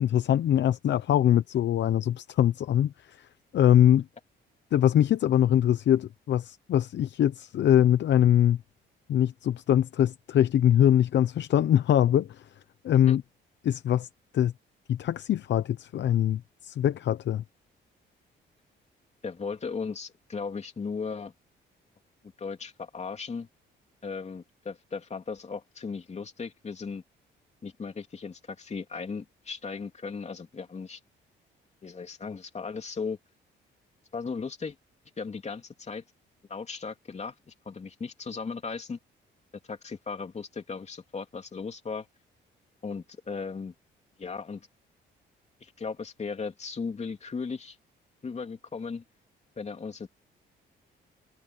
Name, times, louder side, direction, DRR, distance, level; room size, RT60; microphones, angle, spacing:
voice 1, 0.0-4.1 4.7-8.6 9.1-12.4 12.8-13.2 13.6-14.1 14.3-14.5 14.9-17.4, left 10 dB, 65° left, 0.9 m, -23 dB
voice 2, 19.2-21.3 22.4-23.5 24.0-27.0 27.6-31.0 31.8-33.2 34.1-34.7 35.2-36.0 36.5-39.0 39.7-42.1 42.8-43.7 44.2-44.7 45.6-47.8 48.2-49.0 49.6-50.1, left 5 dB, 35° left, 3.0 m, -36 dB
cardioid pair, 90°, 20 cm